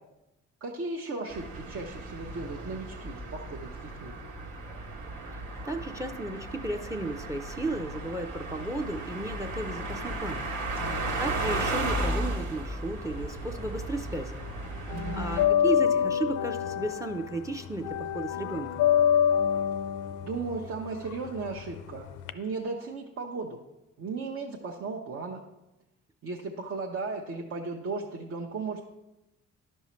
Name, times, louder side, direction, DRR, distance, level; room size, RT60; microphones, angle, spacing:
voice 1, 0.6-4.2 10.8-11.3 14.9-15.2 20.2-23.6 24.0-25.4 26.2-28.8, right 3 dB, 50° right, 0 dB, 0.8 m, -36 dB
sound 1, 1.3-15.4, right 2 dB, 80° right, 1.4 m, -35 dB
voice 2, 5.3-10.5 10.8-14.4 15.1-18.9, right 2 dB, 10° right, 7 dB, 0.5 m, -34 dB
sound 2, 13.0-14.1 14.4-22.3, left 9 dB, 75° left, 0.5 m, -27 dB
12.0 x 5.4 x 3.1 m, 0.95 s
cardioid pair, 90°, 30 cm